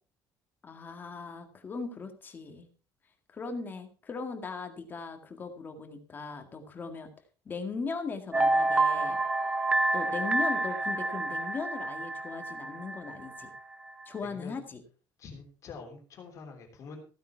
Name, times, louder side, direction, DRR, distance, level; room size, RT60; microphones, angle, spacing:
voice 1, 0.6-2.7 3.3-7.1 7.5-9.2 9.9-13.5 14.1-14.8, left 4 dB, 25° left, 6 dB, 2.0 m, -38 dB
sound 1, 8.3-13.6 13.9-14.0, right 2 dB, 15° right, 0.8 m, -28 dB
voice 2, 14.2-14.6 15.2-17.0, left 4 dB, 45° left, 3 dB, 3.4 m, -46 dB
15.5 x 9.1 x 4.6 m, 0.38 s
cardioid pair, 165°, 8 cm